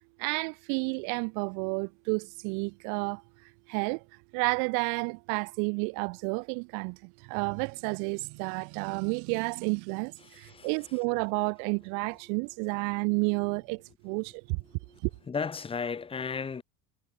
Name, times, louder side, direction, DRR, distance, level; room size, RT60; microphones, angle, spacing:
voice 1, 0.2-3.2 3.7-4.0 4.3-14.6 15.0-15.1, right 40 dB or more, 65° right, 5.5 m, -31 dB
voice 2, 10.2-10.7 14.9-15.0 15.3-16.6, left 5 dB, 15° left, 7.1 m, -34 dB
cardioid pair, 165°, 32 cm